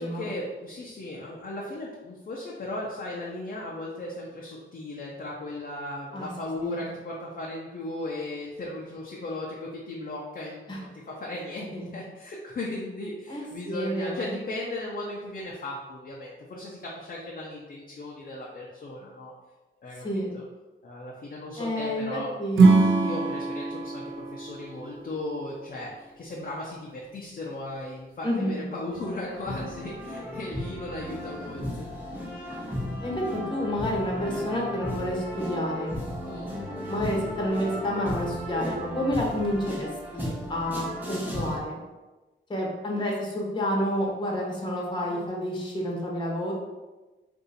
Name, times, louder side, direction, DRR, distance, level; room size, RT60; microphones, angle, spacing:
voice 1, 0.0-19.3 19.8-20.0 20.3-20.4 20.8-22.3 23.0-31.9 36.2-36.5 43.0-43.1 45.0-45.2, left 2 dB, 45° left, -4 dB, 0.6 m, -36 dB
voice 2, 13.3-14.4 20.0-20.3 21.6-23.2 28.2-28.6 33.0-36.0 36.9-39.9 40.1-41.8 42.5-46.5, equal, 20° left, -3 dB, 0.9 m, -29 dB
Acoustic guitar / Strum, 22.5-25.8, right 3 dB, 80° right, 0.5 m, -23 dB
sound 1, 28.9-41.6, equal, 10° right, 0.9 m, -35 dB
2.7 x 2.6 x 4.0 m, 1.2 s
wide cardioid pair, 95°, 20 cm